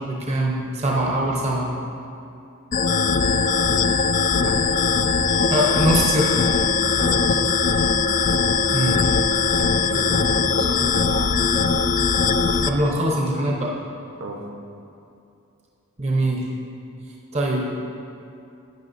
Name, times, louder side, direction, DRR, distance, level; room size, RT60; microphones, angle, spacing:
voice 1, 0.0-1.7 5.5-6.5 8.7-9.0 12.7-13.7 16.0-16.5 17.3-17.7, right 1 dB, 30° right, -3 dB, 0.8 m, -22 dB
sound 1, 2.7-12.7, left 5 dB, 40° left, 0.3 m, -20 dB
voice 2, 7.0-7.6 9.6-11.7 14.2-14.4, right 1 dB, 65° right, 0 dB, 1.1 m, -33 dB
12.0 x 8.6 x 2.7 m, 2.6 s
head